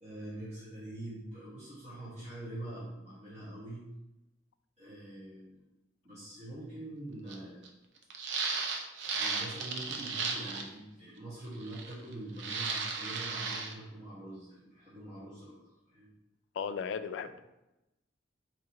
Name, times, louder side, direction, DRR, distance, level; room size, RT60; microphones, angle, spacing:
voice 1, 0.0-3.9 4.8-5.6 6.0-7.7 9.0-15.6 15.9-16.1, right 1 dB, 40° right, -12 dB, 1.5 m, -44 dB
sound 1, 7.3-7.4 7.6-7.7 8.1-10.7 11.6-12.1 12.4-13.7, right 4 dB, 70° right, 0.5 m, -35 dB
voice 2, 16.5-17.4, left 6 dB, 80° left, 11 dB, 0.3 m, -36 dB
4.8 x 3.0 x 2.9 m, 0.95 s
head